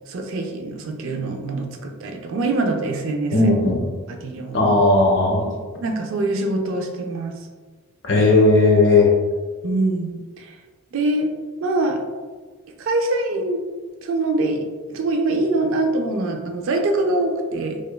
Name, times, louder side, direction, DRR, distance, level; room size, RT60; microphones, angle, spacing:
voice 1, 0.1-3.4 4.1-4.7 5.8-7.4 9.6-10.5 10.9-11.3 11.6-12.0 12.8-13.6 14.0-14.6 14.9-17.8, right 2 dB, 60° right, 4 dB, 0.3 m, -24 dB
voice 2, 3.3-3.8 4.5-5.5 8.0-9.1, left 2 dB, 55° left, -1 dB, 0.5 m, -16 dB
2.8 x 2.2 x 2.2 m, 1.4 s
head